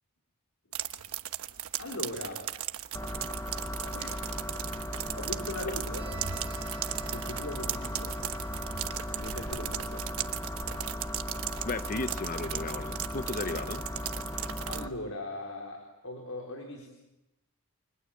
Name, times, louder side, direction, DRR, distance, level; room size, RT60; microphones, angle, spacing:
sound 1, 0.7-14.9, right 11 dB, 80° right, 1.2 m, -38 dB
voice 1, 1.8-2.5 3.9-4.2 5.1-6.1 7.0-8.2 9.1-10.1 14.7-16.9, left 1 dB, 70° left, 1 dB, 4.3 m, -40 dB
sound 2, 2.9-14.9, left 1 dB, 15° left, 1.0 m, -37 dB
Bowed string instrument, 6.0-9.7, right 4 dB, 20° right, 2.2 m, -50 dB
voice 2, 11.6-13.8, left 3 dB, 40° left, 12 dB, 0.9 m, -34 dB
30.0 x 26.0 x 7.7 m, 0.97 s
head